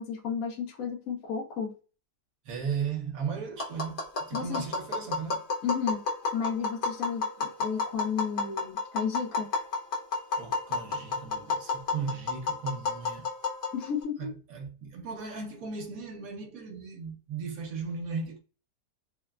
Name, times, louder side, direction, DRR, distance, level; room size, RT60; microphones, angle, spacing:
voice 1, 0.0-1.7 4.3-4.7 5.6-6.0 6.3-9.5 13.7-14.3, left 7 dB, 65° left, 1.3 m, -33 dB
voice 2, 2.5-4.0 4.3-5.4 10.4-13.3 14.2-18.4, right 6 dB, 70° right, 1.1 m, -36 dB
Tap, 3.6-14.0, left 4 dB, 50° left, 0.6 m, -32 dB
3.3 x 2.1 x 2.3 m
omnidirectional pair, 1.6 m